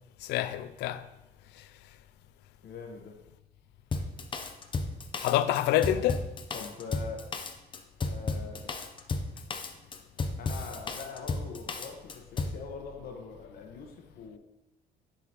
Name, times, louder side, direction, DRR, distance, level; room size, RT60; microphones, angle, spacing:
voice 1, 0.2-1.1 1.6-1.7 5.2-6.3, left 12 dB, 85° left, 0.4 m, -27 dB
voice 2, 2.6-3.2 6.5-7.2 8.0-8.7 10.4-14.4, left 5 dB, 60° left, 1.1 m, -43 dB
Drum kit, 3.9-12.6, left 3 dB, 30° left, 0.6 m, -33 dB
9.5 x 3.9 x 3.0 m
cardioid pair, 110°, 17 cm